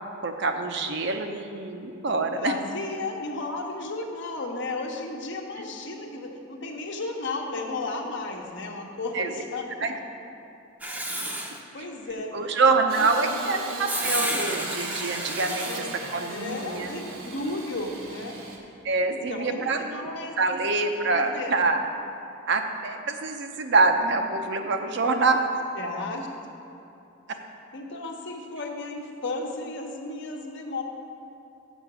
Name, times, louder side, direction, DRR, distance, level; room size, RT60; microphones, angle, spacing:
voice 1, 0.2-2.5 9.1-9.3 9.8-9.9 11.8-11.9 12.3-15.8 16.1-17.0 18.8-19.8 20.4-21.8 22.5-25.4, right 3 dB, 60° right, 5 dB, 0.6 m, -25 dB
voice 2, 2.2-9.6 11.7-12.3 12.9-13.5 15.6-15.9 16.3-18.4 19.0-20.6 21.1-21.7 25.4-25.5 25.8-26.3 27.7-30.8, left 2 dB, 60° left, 1 dB, 1.0 m, -34 dB
Writing, 10.8-11.6 13.9-15.8, right 1 dB, 10° right, 0.6 m, -31 dB
Engine starting / Sawing, 12.9-18.6, right 2 dB, 80° right, 1.3 m, -38 dB
7.1 x 5.9 x 7.3 m, 2.9 s
head